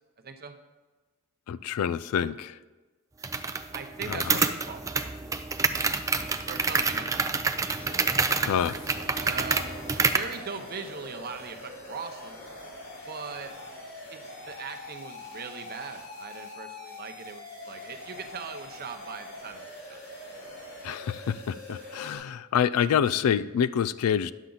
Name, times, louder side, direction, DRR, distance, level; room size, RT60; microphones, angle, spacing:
voice 1, 0.2-0.5 3.7-5.1 6.4-7.6 9.2-12.4 13.0-13.5 14.1-20.0, right 5 dB, 45° right, 6 dB, 0.7 m, -40 dB
voice 2, 1.5-2.5 4.1-4.4 8.4-8.8 20.8-24.3, left 8 dB, 90° left, 16 dB, 0.3 m, -27 dB
sound 1, 3.2-10.3, right 4 dB, 15° right, 0.3 m, -27 dB
sound 2, 7.8-22.2, left 2 dB, 60° left, 2.7 m, -43 dB
9.9 x 7.2 x 3.9 m, 1.3 s
head